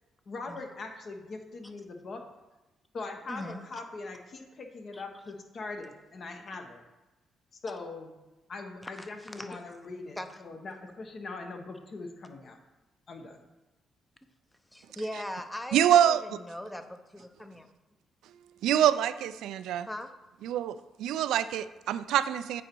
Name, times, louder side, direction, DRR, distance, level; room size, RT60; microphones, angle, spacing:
voice 1, 0.3-2.2 2.9-6.8 7.6-8.1 8.5-12.6 13.1-13.4, left 3 dB, 50° left, 1.1 m, -41 dB
voice 2, 3.3-3.6 4.9-5.0 8.8-10.6 14.7-17.7 19.9-20.1, left 1 dB, 10° left, 0.6 m, -40 dB
voice 3, 15.7-16.2 18.6-19.9 20.4-22.6, right 10 dB, 85° right, 0.3 m, -25 dB
8.6 x 3.9 x 4.5 m
cardioid pair, 90°, 0 cm